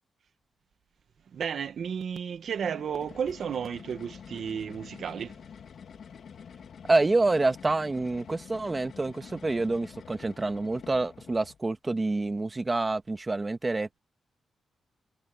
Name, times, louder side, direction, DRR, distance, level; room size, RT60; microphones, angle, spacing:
voice 1, 1.3-5.4, right 7 dB, 65° right, 1.5 m, -33 dB
sound 1, 2.5-11.7, left 7 dB, 65° left, 2.1 m, -48 dB
voice 2, 6.9-14.0, right 2 dB, 25° right, 1.8 m, -27 dB
cardioid pair, 110°, 0 cm